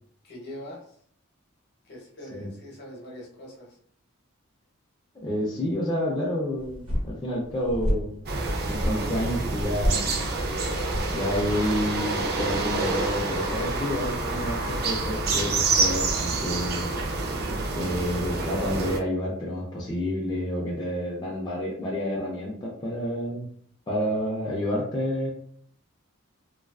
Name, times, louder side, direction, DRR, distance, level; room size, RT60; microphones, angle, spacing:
voice 1, 0.2-1.0 1.8-3.8, left 1 dB, 50° left, -2 dB, 0.7 m, -42 dB
voice 2, 5.2-8.2 8.7-10.1 11.1-16.9 17.8-23.5 23.9-25.3, left 1 dB, 20° left, -5 dB, 0.4 m, -29 dB
sound 1, 6.6-12.0, equal, 85° right, 1.0 m, -31 dB
sound 2, 8.3-19.0, right 3 dB, 45° right, 0.4 m, -28 dB
2.4 x 2.3 x 2.2 m, 0.62 s
head